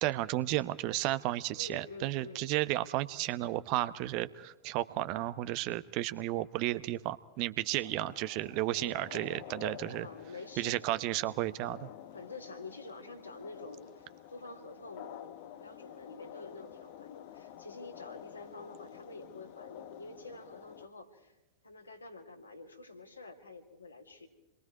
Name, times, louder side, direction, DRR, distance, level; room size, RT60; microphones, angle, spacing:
voice 1, 0.0-10.1 10.6-11.9, right 16 dB, 45° right, 14 dB, 1.0 m, -33 dB
voice 2, 1.6-2.5 8.7-9.0 10.0-11.0 12.0-21.4 21.6-24.3, left 3 dB, 80° left, 2 dB, 3.5 m, -48 dB
sound 1, 7.8-20.9, left 11 dB, 50° left, 1.3 m, -50 dB
28.5 x 22.0 x 4.8 m, 1.0 s
figure-of-eight pair, 90°, 0 cm